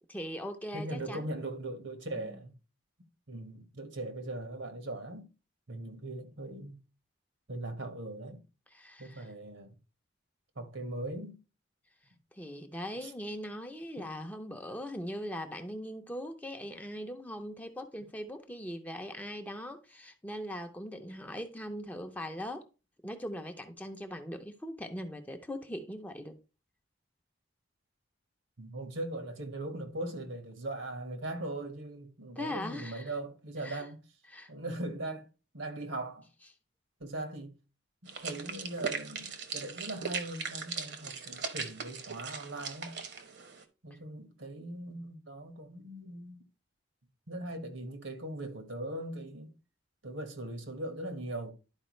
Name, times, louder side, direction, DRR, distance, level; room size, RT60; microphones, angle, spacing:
voice 1, 0.1-1.4 2.2-2.4 8.7-9.3 12.3-22.6 23.0-26.4 32.4-33.1 33.6-33.8 34.3-34.5, equal, 10° left, 0.6 m, -40 dB
voice 2, 0.7-2.5 3.3-5.3 5.7-6.8 7.5-8.4 9.0-9.7 10.5-11.4 13.0-13.1 14.0-14.1 28.6-34.0 34.5-35.3 35.5-36.3 37.0-37.5 38.0-42.9 43.8-46.4 47.3-49.5 50.0-51.5, right 1 dB, 75° right, 1.5 m, -40 dB
sound 1, 38.1-43.6, right 5 dB, 55° right, 1.1 m, -39 dB
11.5 x 4.7 x 3.2 m
head